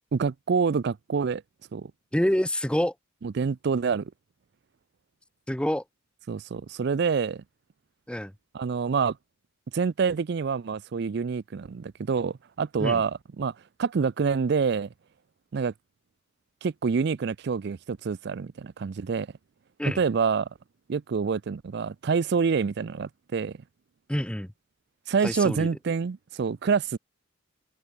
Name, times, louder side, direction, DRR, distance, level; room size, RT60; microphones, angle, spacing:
voice 1, 0.1-1.4 1.7-1.9 3.2-4.1 6.3-7.4 8.5-9.2 9.7-13.5 13.8-14.9 15.5-15.7 16.6-19.3 19.9-20.5 20.9-23.6 25.1-27.0, right 5 dB, 55° right, 0.4 m, -27 dB
voice 2, 2.1-2.9 5.5-5.8 8.1-8.3 12.8-13.0 19.8-20.0 24.1-24.5 25.2-25.7, equal, 5° left, 0.7 m, -26 dB
head